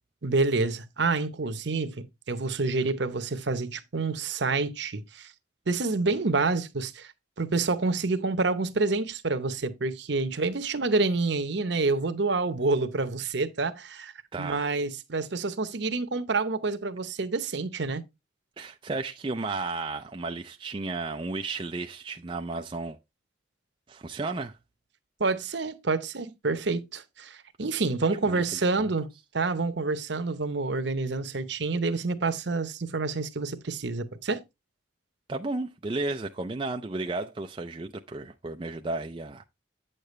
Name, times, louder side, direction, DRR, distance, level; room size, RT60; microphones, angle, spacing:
voice 1, 0.2-5.3 5.7-7.1 7.4-18.0 25.2-29.1 29.3-34.4, right 3 dB, 60° right, 0.8 m, -28 dB
voice 2, 14.3-14.7 18.6-23.0 23.9-24.6 28.2-28.4 28.8-28.9 35.3-39.4, right 3 dB, 25° right, 0.4 m, -33 dB
8.8 x 6.7 x 3.1 m
head